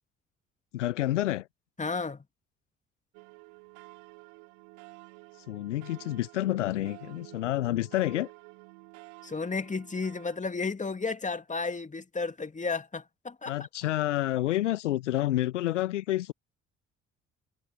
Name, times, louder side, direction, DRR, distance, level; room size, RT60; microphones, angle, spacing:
voice 1, 0.7-1.5 5.5-8.3 13.5-16.3, left 15 dB, 75° left, 1.2 m, -29 dB
voice 2, 1.8-2.2 9.2-13.5, left 4 dB, 20° left, 2.5 m, -33 dB
sound 1, 3.1-10.4, right 40 dB or more, 65° right, 4.9 m, -51 dB
figure-of-eight pair, 45°, 36 cm